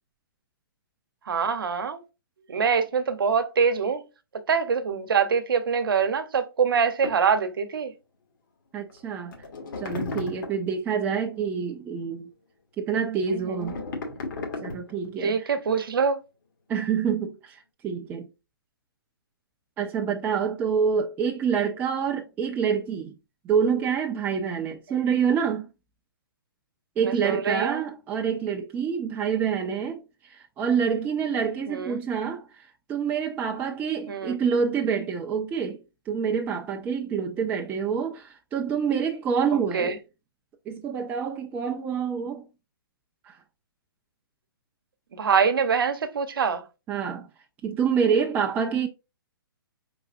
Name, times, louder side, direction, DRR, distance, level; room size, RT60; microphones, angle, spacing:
voice 1, 1.3-2.0 2.5-4.0 4.5-7.9 13.3-13.8 15.2-16.2 27.0-27.8 31.7-32.0 34.1-34.4 39.7-39.9 45.1-46.6, right 6 dB, 70° right, 0.9 m, -24 dB
sound 1, 7.0-7.2 8.9-9.0 9.3-10.7 13.3-15.1, left 3 dB, 60° left, 1.5 m, -34 dB
voice 2, 8.7-9.3 9.8-12.3 12.8-13.8 14.6-15.6 16.7-18.3 19.8-23.1 23.4-25.7 27.0-35.8 36.1-40.0 40.7-42.5 43.3-43.4 46.9-47.3 47.6-48.9, right 6 dB, 15° right, 0.4 m, -27 dB
4.7 x 3.8 x 2.5 m
hypercardioid pair, 135°, 12 cm